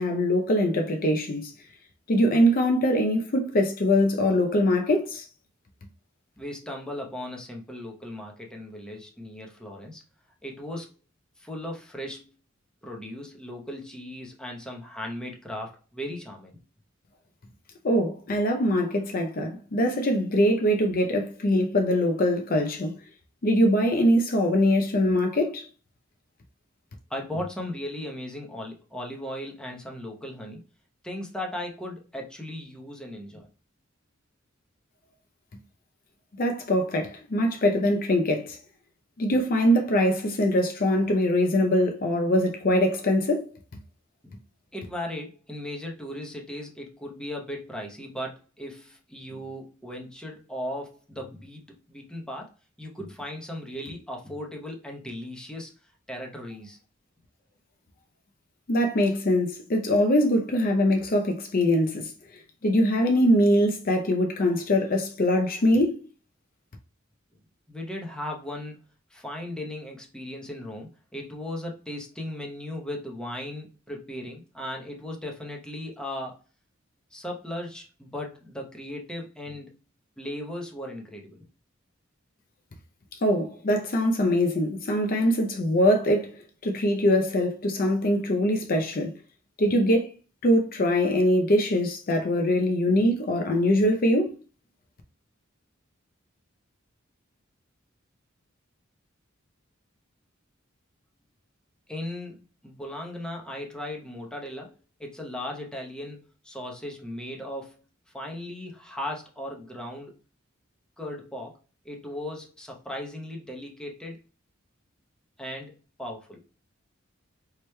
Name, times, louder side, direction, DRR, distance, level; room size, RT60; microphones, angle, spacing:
voice 1, 0.0-1.5 2.1-5.2 17.8-22.9 23.4-25.7 36.4-38.6 39.2-43.5 58.7-62.1 62.6-66.1 83.2-89.1 89.6-90.1 90.4-94.4, left 1 dB, 45° left, 0.6 m, -23 dB
voice 2, 6.4-10.0 10.4-10.9 11.4-12.3 12.8-16.6 27.1-30.6 31.0-33.5 44.2-44.3 44.7-52.5 52.8-55.8 56.1-56.8 67.7-68.8 69.1-76.4 77.1-79.8 80.2-81.4 101.9-104.7 105.0-107.8 108.1-110.2 111.0-114.2 115.4-116.4, left 1 dB, 5° left, 0.8 m, -37 dB
4.7 x 3.0 x 2.2 m
head